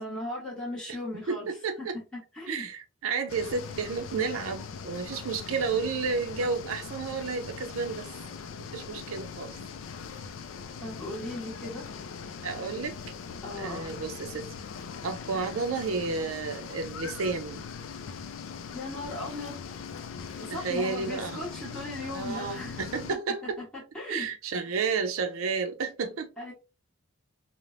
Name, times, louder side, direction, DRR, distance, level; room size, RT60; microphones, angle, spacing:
voice 1, 0.0-1.5 1.8-1.9 2.1-2.7 10.8-11.8 13.4-14.0 18.7-19.6 20.4-22.8 23.4-23.6 23.9-24.3 26.4-26.5, left 1 dB, 5° left, 1.0 m, -37 dB
voice 2, 1.3-2.0 2.5-8.1 8.6-9.5 12.4-13.0 13.6-14.4 15.0-17.6 20.5-21.3 22.1-23.6 24.1-26.3, right 4 dB, 85° right, 0.5 m, -31 dB
sound 1, 3.3-23.2, left 6 dB, 65° left, 0.3 m, -41 dB
3.2 x 2.1 x 2.4 m
head